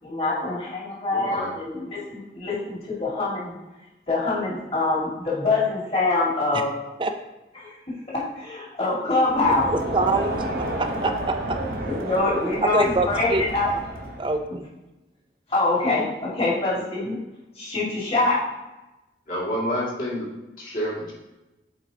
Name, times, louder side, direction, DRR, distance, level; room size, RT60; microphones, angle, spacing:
voice 1, 0.0-3.5 4.1-6.7 7.6-7.7 8.1-9.7 10.6-10.7 11.8-13.7 14.5-14.6 15.5-17.2 17.6-18.4, left 3 dB, 35° left, -6 dB, 2.0 m, -24 dB
voice 2, 1.1-1.5 19.3-20.3 20.6-21.1, equal, 50° left, -6 dB, 2.3 m, -28 dB
Crowd, 9.3-14.4, right 1 dB, 55° right, 0.9 m, -31 dB
voice 3, 9.9-10.3 10.8-11.6 12.7-13.4 14.2-14.7, right 3 dB, 30° right, 7 dB, 0.4 m, -24 dB
8.0 x 4.6 x 2.8 m, 1.0 s
head